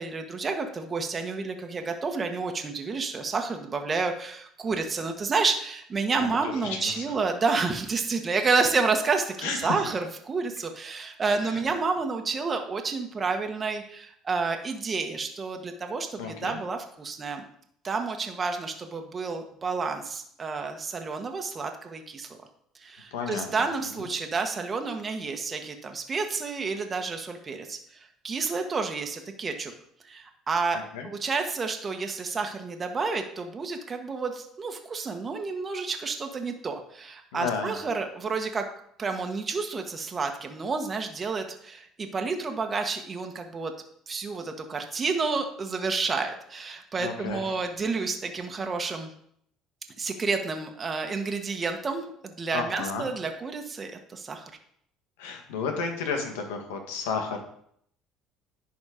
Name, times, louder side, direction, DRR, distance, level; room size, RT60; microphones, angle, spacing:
voice 1, 0.0-17.4 17.8-22.4 22.8-27.8 28.2-29.7 30.1-38.6 39.0-43.7 44.1-49.1 50.0-54.5, right 4 dB, 30° right, 4 dB, 1.3 m, -30 dB
voice 2, 6.4-7.0 9.4-9.8 11.5-11.6 16.2-16.6 23.1-23.5 24.0-24.1 30.7-31.1 37.3-37.8 47.0-47.5 52.5-53.0 55.2-57.5, left 5 dB, 90° left, 3 dB, 1.7 m, -32 dB
11.0 x 4.3 x 5.1 m, 0.67 s
supercardioid pair, 85°, 0 cm